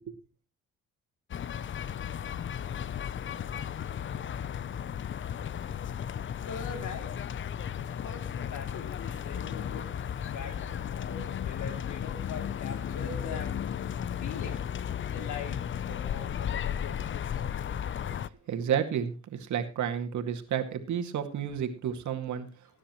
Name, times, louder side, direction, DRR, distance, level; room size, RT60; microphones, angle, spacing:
sound 1, 1.3-18.3, left 9 dB, 40° left, 0.6 m, -35 dB
voice 1, 6.5-7.1 7.8-9.9 10.3-13.7 14.2-14.6 15.1-15.6 15.9-17.3, left 5 dB, 75° left, 3.0 m, -42 dB
voice 2, 18.5-22.5, right 8 dB, 70° right, 2.1 m, -31 dB
19.0 x 10.0 x 3.0 m
cardioid pair, 90°, 30 cm